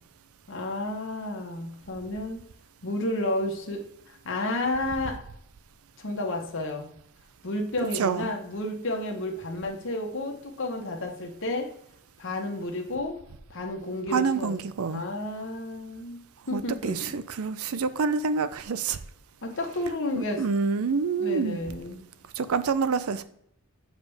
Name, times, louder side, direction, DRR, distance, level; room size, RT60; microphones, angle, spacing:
voice 1, 0.5-2.4 2.8-5.2 6.0-6.9 7.4-11.7 12.2-13.2 13.5-14.5 14.9-16.2 16.5-17.1 19.4-20.4 21.2-22.0, left 1 dB, 60° left, 2 dB, 1.2 m, -31 dB
voice 2, 8.0-8.3 14.1-15.0 16.5-19.0 20.1-21.6 22.4-23.2, right 5 dB, 80° right, 14 dB, 0.5 m, -27 dB
7.0 x 5.1 x 3.4 m, 0.71 s
head